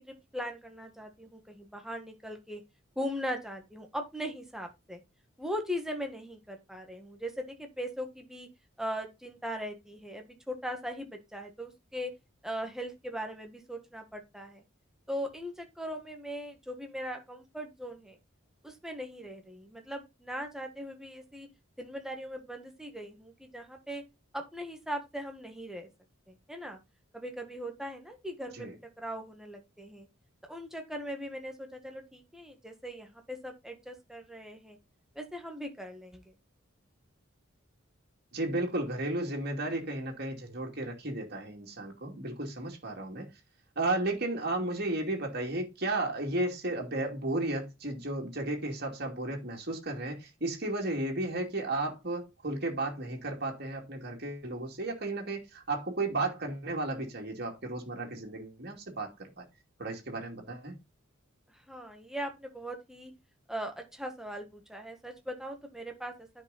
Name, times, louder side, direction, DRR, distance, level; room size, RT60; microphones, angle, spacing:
voice 1, 0.0-2.6 2.9-5.0 5.4-8.5 8.8-12.1 12.4-14.6 15.1-18.2 18.6-21.5 21.8-24.0 24.3-25.9 26.3-26.8 27.1-30.1 30.5-34.8 35.1-36.3 61.7-63.1 63.5-66.1, equal, ahead, 1.6 m, -39 dB
voice 2, 38.3-43.3 43.8-59.4 59.8-60.7, right 2 dB, 50° right, 2.6 m, -34 dB
10.0 x 5.3 x 4.1 m
head